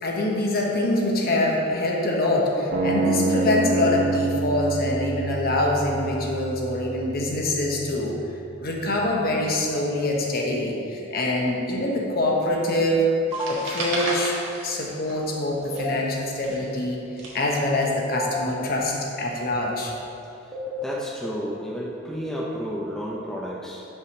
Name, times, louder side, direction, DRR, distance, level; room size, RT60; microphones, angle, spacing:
voice 1, 0.0-8.2 8.6-13.1 13.5-14.4 14.6-17.0 17.3-19.9, left 1 dB, 50° left, -1 dB, 1.0 m, -24 dB
sound 1, 2.7-8.7, right 3 dB, 40° right, 0.9 m, -28 dB
sound 2, 13.3-13.5 15.7-15.9 18.1-18.3 20.5-20.9, right 1 dB, 20° right, 1.3 m, -31 dB
sound 3, 13.3-15.4 15.6-17.8, right 1 dB, 75° right, 1.5 m, -32 dB
voice 2, 20.5-23.8, equal, 5° left, -4 dB, 0.5 m, -32 dB
5.6 x 4.9 x 6.1 m, 2.8 s
head